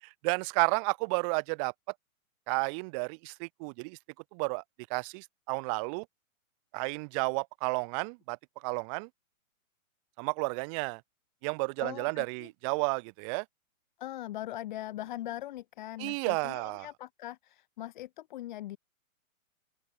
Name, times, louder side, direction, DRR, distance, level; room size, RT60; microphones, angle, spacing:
voice 1, 0.2-1.7 2.5-4.0 4.3-4.6 4.9-6.1 6.7-8.4 8.6-9.1 10.2-11.0 11.4-13.4 16.0-16.9, right 34 dB, 25° right, 2.3 m, -32 dB
voice 2, 11.8-12.5 14.0-18.8, left 14 dB, 35° left, 1.8 m, -41 dB
hypercardioid pair, 170°, 42 cm